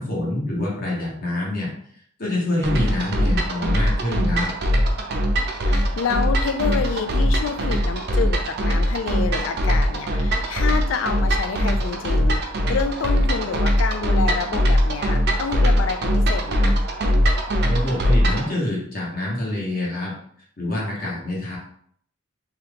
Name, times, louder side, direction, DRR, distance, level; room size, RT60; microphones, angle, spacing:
voice 1, 0.0-1.7 2.2-4.5 17.6-20.1 20.6-21.6, left 1 dB, 50° left, -5 dB, 1.2 m, -26 dB
sound 1, 2.6-18.5, equal, 55° right, 0.5 m, -21 dB
voice 2, 5.6-16.8 21.0-21.1, left 6 dB, 80° left, 8 dB, 0.3 m, -28 dB
2.9 x 2.3 x 3.4 m, 0.63 s
head